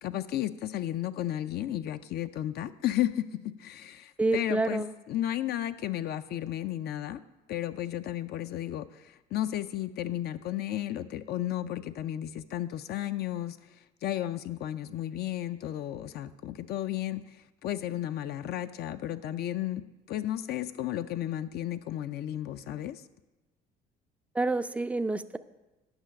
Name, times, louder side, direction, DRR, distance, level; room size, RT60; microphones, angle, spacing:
voice 1, 0.0-7.2 7.5-13.6 14.0-17.4 17.6-19.8 20.1-23.0, left 12 dB, 55° left, 11 dB, 0.4 m, -33 dB
voice 2, 4.2-4.9 24.3-25.4, right 3 dB, 5° right, 12 dB, 0.4 m, -28 dB
8.9 x 5.7 x 5.1 m, 1.1 s
supercardioid pair, 80°, 19 cm